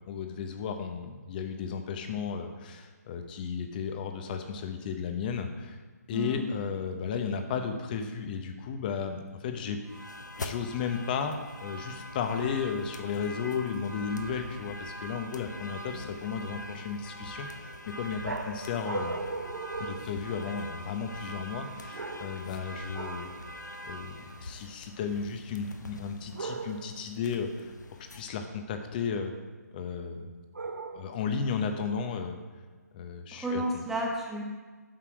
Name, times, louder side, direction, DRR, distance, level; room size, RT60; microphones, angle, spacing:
voice 1, 0.0-5.8 6.1-9.8 10.4-19.2 19.8-23.3 23.8-27.7 28.1-29.3 29.7-30.3 30.9-32.4 32.9-33.8, left 6 dB, 30° left, 6 dB, 0.9 m, -34 dB
voice 2, 6.1-6.5 33.3-34.4, equal, 5° right, -2 dB, 0.8 m, -32 dB
sound 1, 9.8-28.2, equal, 85° left, 0.8 m, -43 dB
sound 2, 18.2-20.7 21.9-22.6 22.9-23.4 26.3-27.0 30.5-31.3, right 3 dB, 70° right, 1.1 m, -38 dB
7.6 x 6.0 x 4.7 m, 1.4 s
figure-of-eight pair, 145°, 9 cm